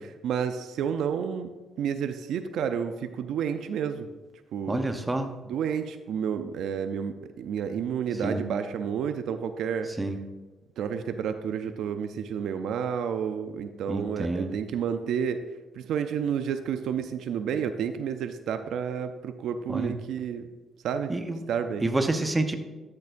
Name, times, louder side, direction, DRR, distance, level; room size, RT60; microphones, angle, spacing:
voice 1, 0.2-1.5 1.8-4.1 4.5-4.9 5.5-9.9 10.8-15.5 15.7-20.5 20.8-21.1 21.5-21.9, right 7 dB, 75° right, 9 dB, 0.4 m, -30 dB
voice 2, 4.7-5.3 8.2-8.4 10.0-10.2 13.9-14.6 19.7-19.9 21.1-21.4 21.8-22.5, right 2 dB, 15° right, 6 dB, 0.8 m, -28 dB
12.0 x 6.7 x 2.6 m, 1.2 s
cardioid pair, 90°, 0 cm